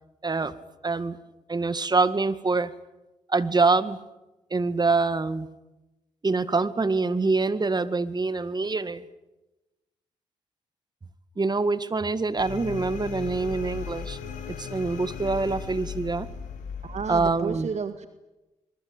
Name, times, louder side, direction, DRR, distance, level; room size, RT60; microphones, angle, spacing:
voice 1, 0.2-0.5 0.8-1.2 1.5-2.7 3.3-4.0 4.5-5.5 6.2-9.0 11.4-14.2 14.6-16.3 17.1-17.7, right 3 dB, 30° right, 14 dB, 2.0 m, -25 dB
sound 1, 12.4-17.4, left 6 dB, 85° left, 5.3 m, -37 dB
voice 2, 16.8-18.1, right 6 dB, 60° right, 9 dB, 1.9 m, -32 dB
26.0 x 23.0 x 8.9 m, 1.0 s
supercardioid pair, 55°, 13 cm